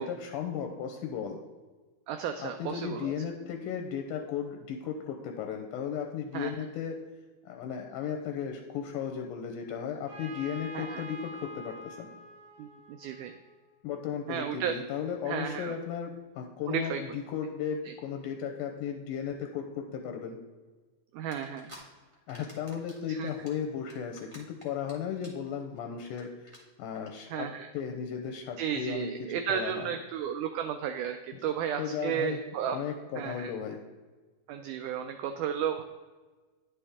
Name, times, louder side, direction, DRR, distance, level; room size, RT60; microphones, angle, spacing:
voice 1, 0.0-1.4 2.4-7.0 7.4-12.1 13.8-20.4 22.3-26.5 26.8-29.1 29.5-29.9 31.8-32.4 32.7-33.8, left 7 dB, 80° left, 4 dB, 2.0 m, -35 dB
voice 2, 2.1-3.1 6.3-6.5 10.7-11.0 12.6-13.3 14.3-14.7 15.3-15.8 16.7-17.2 17.8-17.9 21.1-21.7 23.1-23.3 27.3-27.7 28.6-32.8 33.1-33.5 34.5-35.8, right 8 dB, 85° right, 7 dB, 1.8 m, -33 dB
Trumpet, 10.1-13.8, right 1 dB, 60° right, 1.3 m, -46 dB
sound 1, 21.3-21.8 22.1-23.0 23.3-24.9 25.2-25.5 25.8-25.9 26.1-26.2 26.5-26.6 26.9-27.1, equal, 40° right, 0.4 m, -50 dB
10.0 x 5.6 x 3.5 m, 1.3 s
omnidirectional pair, 4.1 m